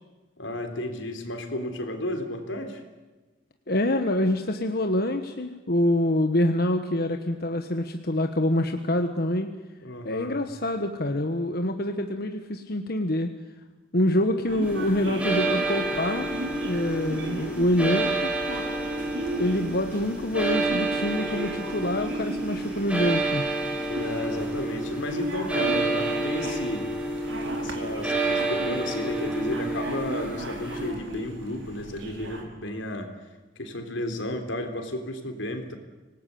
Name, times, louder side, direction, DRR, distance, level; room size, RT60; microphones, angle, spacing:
voice 1, 0.4-2.8 9.8-10.4 23.9-26.9 27.5-33.1 33.6-35.8, left 1 dB, 85° left, 6 dB, 3.7 m, -33 dB
voice 2, 3.7-9.5 10.0-13.3 13.9-16.3 16.6-18.3 19.4-23.4, left 1 dB, 55° left, 6 dB, 1.3 m, -26 dB
sound 1, 14.5-32.4, right 1 dB, 80° right, 4.7 m, -37 dB
sound 2, 14.6-30.9, right 2 dB, 5° right, 5.7 m, -29 dB
26.0 x 19.0 x 8.6 m, 1.2 s
head